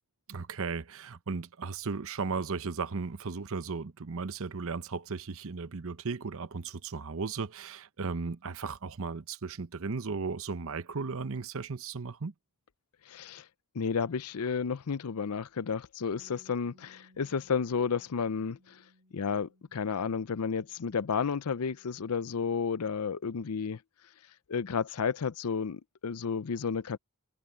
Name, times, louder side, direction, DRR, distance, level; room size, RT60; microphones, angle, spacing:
voice 1, 0.3-12.3, right 4 dB, 65° right, 0.8 m, -36 dB
voice 2, 13.1-13.4 13.7-18.8 19.1-23.8 24.5-27.0, left 6 dB, 85° left, 0.6 m, -32 dB
Bass guitar, 16.1-22.4, equal, 40° right, 2.8 m, -63 dB
head